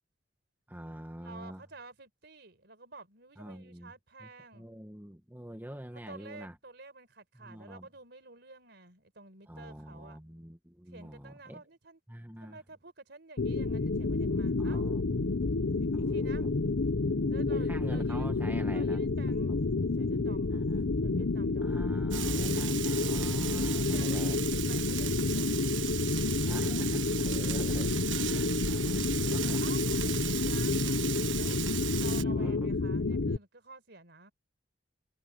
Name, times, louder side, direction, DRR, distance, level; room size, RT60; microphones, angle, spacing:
voice 1, 0.7-1.6 3.4-3.9 4.2-6.6 7.3-7.9 9.5-11.6 12.1-12.6 14.6-15.1 15.9-16.5 17.5-19.0 19.3-19.6 20.5-20.8 21.6-24.4 26.4-29.7 32.2-33.4, equal, 10° right, 1.4 m, -45 dB
voice 2, 1.2-4.7 5.9-10.2 10.9-12.0 12.4-14.9 15.8-16.5 17.3-18.4 18.7-19.6 20.0-20.6 21.0-21.8 23.5-25.6 28.1-28.4 29.3-31.6 32.0-34.3, right 3 dB, 60° right, 4.6 m, -51 dB
sound 1, 13.4-33.4, left 3 dB, 80° left, 0.8 m, -29 dB
Frying (food), 22.1-32.2, right 12 dB, 85° right, 1.5 m, -37 dB
head